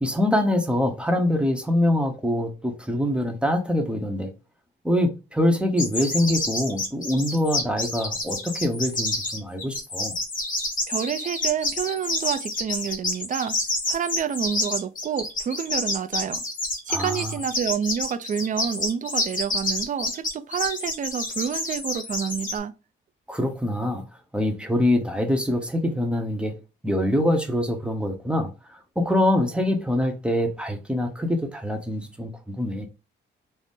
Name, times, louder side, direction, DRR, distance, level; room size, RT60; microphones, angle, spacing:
voice 1, 0.0-4.3 4.8-10.1 16.9-17.3 23.3-24.0 24.3-26.6 26.8-32.9, left 1 dB, 5° right, 0.9 m, -24 dB
sound 1, 5.8-22.6, left 2 dB, 45° left, 1.3 m, -28 dB
voice 2, 10.9-13.6 13.9-16.4 16.9-22.7, right 8 dB, 40° right, 0.5 m, -28 dB
3.9 x 2.1 x 3.6 m
cardioid pair, 90°, 20 cm